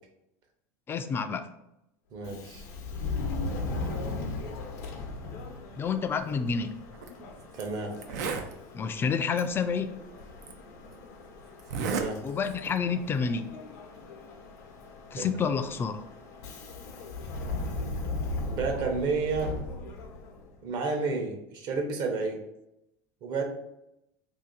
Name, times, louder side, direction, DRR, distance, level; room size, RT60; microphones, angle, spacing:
voice 1, 0.9-1.5 5.8-6.8 8.7-9.9 12.2-13.5 15.1-16.0, left 6 dB, 25° left, 9 dB, 0.4 m, -29 dB
voice 2, 2.1-2.6 7.5-7.9 11.8-12.2 15.2-15.3 18.5-19.6 20.6-22.4 23.2-23.4, right 4 dB, 55° right, 2 dB, 0.9 m, -30 dB
Subway metro underground, 2.2-20.5, left 2 dB, 80° left, 0.7 m, -38 dB
Zipper (clothing), 6.9-7.1 7.6-7.7 7.9-8.5 9.4-9.5 10.4-10.5 11.6-12.1 12.4-12.8, right 5 dB, 80° right, 0.5 m, -32 dB
2.7 x 2.6 x 3.8 m, 0.84 s
supercardioid pair, 100°, 9 cm